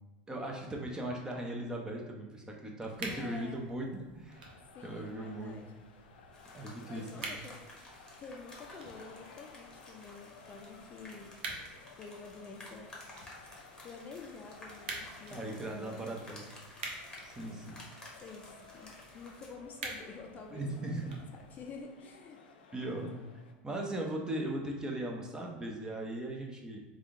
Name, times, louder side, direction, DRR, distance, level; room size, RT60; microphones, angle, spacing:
voice 1, 0.3-4.4 4.8-5.5 6.5-7.4 15.3-16.5 17.2-17.8 18.1-18.2 20.5-21.1 22.7-23.2 23.6-26.8, right 1 dB, 15° right, 0 dB, 0.6 m, -38 dB
sound 1, 2.9-21.8, right 3 dB, 85° right, 0.7 m, -49 dB
voice 2, 3.1-3.6 4.7-5.7 6.8-7.6 8.2-11.4 12.0-12.9 13.8-16.3 17.4-17.8 18.2-21.0 21.3-22.4, left 4 dB, 35° left, 2 dB, 0.5 m, -49 dB
sound 2, 4.3-23.5, left 4 dB, 90° left, 0.4 m, -57 dB
sound 3, 6.3-19.5, left 1 dB, 15° left, 1.0 m, -54 dB
3.5 x 2.4 x 3.6 m, 1.2 s
supercardioid pair, 110°, 5 cm